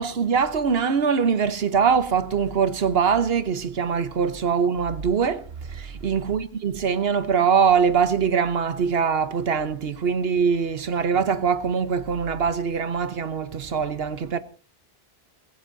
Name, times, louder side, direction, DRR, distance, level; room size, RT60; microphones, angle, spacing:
voice 1, 0.0-14.4, right 6 dB, 70° right, 1.2 m, -23 dB
24.5 x 15.0 x 2.7 m
omnidirectional pair, 1.1 m